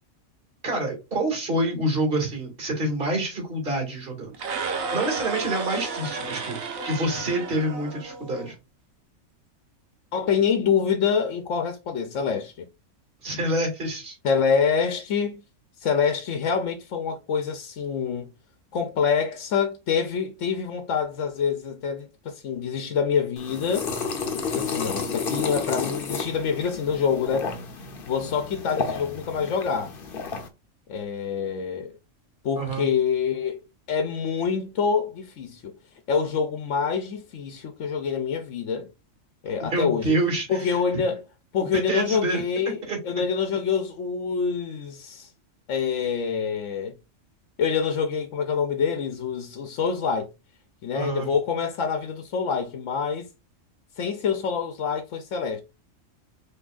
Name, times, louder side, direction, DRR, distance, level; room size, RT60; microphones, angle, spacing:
voice 1, 0.6-4.4 4.9-8.6 13.2-14.2 32.6-32.9 39.7-40.8 41.7-42.4 42.9-43.0 50.9-51.3, right 1 dB, 45° right, 2.3 m, -27 dB
sound 1, 4.3-8.5, right 4 dB, 80° right, 1.3 m, -32 dB
voice 2, 10.1-12.6 14.2-15.4 15.8-18.3 18.7-23.9 24.5-27.7 28.1-29.9 30.9-32.0 32.4-33.6 33.9-35.7 36.1-38.9 39.4-40.1 40.5-41.2 41.5-42.8 43.0-45.3 45.7-46.9 47.6-50.3 50.8-53.3 54.0-55.6, left 6 dB, 70° left, 1.0 m, -26 dB
sound 2, 23.4-30.5, left 5 dB, 50° left, 0.9 m, -32 dB
5.9 x 3.1 x 2.4 m
omnidirectional pair, 1.4 m